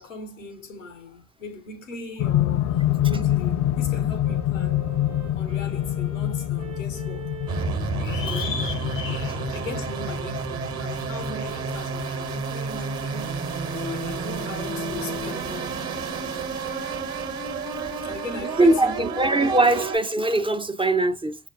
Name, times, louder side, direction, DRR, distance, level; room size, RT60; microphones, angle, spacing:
voice 1, 0.0-2.7 3.0-4.8 5.4-7.2 8.0-13.5 13.8-16.0 16.3-17.3 17.6-19.4, left 3 dB, 85° left, 0.8 m, -38 dB
sound 1, 2.2-14.3 15.3-15.4, left 12 dB, 45° left, 0.5 m, -27 dB
sound 2, 4.2-8.4 9.0-9.7 11.3-11.9 12.5-16.5, left 1 dB, 85° right, 0.6 m, -41 dB
sound 3, 7.5-20.0, right 5 dB, 35° right, 1.2 m, -31 dB
voice 2, 18.4-21.4, right 2 dB, 15° right, 0.5 m, -21 dB
6.2 x 2.4 x 2.5 m
figure-of-eight pair, 40°, 37 cm